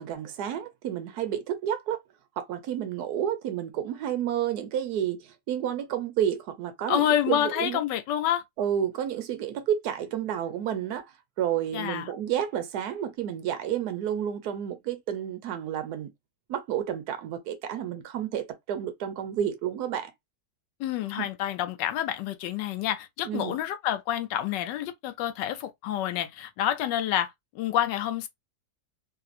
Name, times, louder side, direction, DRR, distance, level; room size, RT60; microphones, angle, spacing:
voice 1, 0.0-2.0 2.4-7.8 8.6-16.1 16.5-20.1 21.1-21.3 23.2-23.6, right 10 dB, 70° right, 1.1 m, -30 dB
voice 2, 6.9-8.4 11.7-12.1 20.8-28.3, left 11 dB, 90° left, 1.2 m, -28 dB
3.2 x 2.7 x 2.4 m
omnidirectional pair, 1.9 m